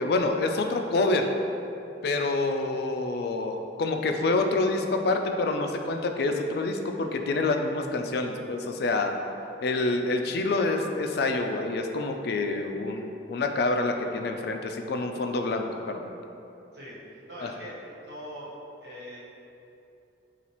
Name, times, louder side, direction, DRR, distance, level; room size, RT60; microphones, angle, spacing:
voice 1, 0.0-1.3 2.0-9.1 9.6-16.1 17.4-17.5, left 2 dB, 60° left, 5 dB, 0.3 m, -27 dB
voice 2, 9.7-10.2 16.7-18.5 18.8-19.2, equal, 65° right, -7 dB, 1.2 m, -43 dB
7.0 x 2.4 x 3.0 m, 2.7 s
head